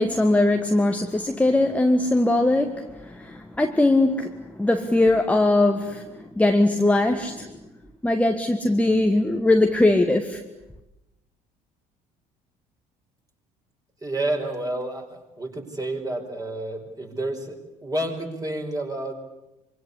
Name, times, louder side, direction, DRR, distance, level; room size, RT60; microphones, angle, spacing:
voice 1, 0.0-7.6 8.0-10.4, left 2 dB, 5° left, 1.5 m, -21 dB
voice 2, 14.0-19.1, right 1 dB, 20° right, 5.2 m, -30 dB
25.0 x 24.5 x 8.3 m
figure-of-eight pair, 55°, 20 cm